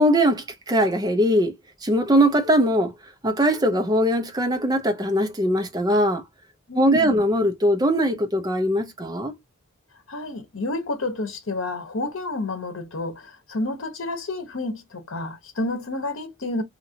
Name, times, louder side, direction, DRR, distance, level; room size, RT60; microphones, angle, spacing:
voice 1, 0.0-1.5 1.8-2.9 3.2-6.2 6.8-9.4, equal, 20° right, 0.6 m, -21 dB
voice 2, 6.7-7.1 10.1-16.6, left 2 dB, 70° left, 0.9 m, -30 dB
2.8 x 2.6 x 2.7 m
head